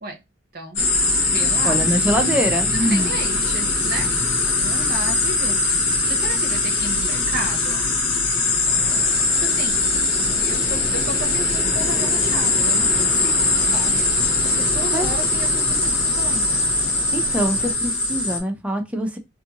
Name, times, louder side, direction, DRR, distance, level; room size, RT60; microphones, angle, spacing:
voice 1, 0.5-0.9 1.3-1.8 2.9-4.1 4.4-5.6 6.1-7.9 9.4-9.8 10.4-14.1 14.4-16.7, right 2 dB, 50° right, 0.7 m, -33 dB
sound 1, 0.8-18.4, left 3 dB, 75° left, 0.9 m, -21 dB
voice 2, 1.6-3.1 14.9-15.1 17.1-19.2, equal, 5° right, 0.4 m, -23 dB
Fixed-wing aircraft airplane, 8.7-17.7, left 1 dB, 45° left, 1.1 m, -36 dB
2.6 x 2.5 x 2.8 m
head